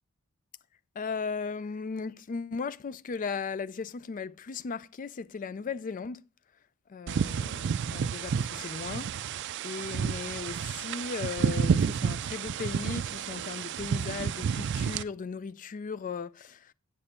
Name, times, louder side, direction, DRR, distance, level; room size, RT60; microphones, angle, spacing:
voice 1, 1.0-6.2 6.9-9.4 9.6-16.7, left 5 dB, 40° left, 0.4 m, -37 dB
sound 1, 7.1-15.0, right 6 dB, 55° right, 0.3 m, -30 dB
8.8 x 6.9 x 4.2 m
head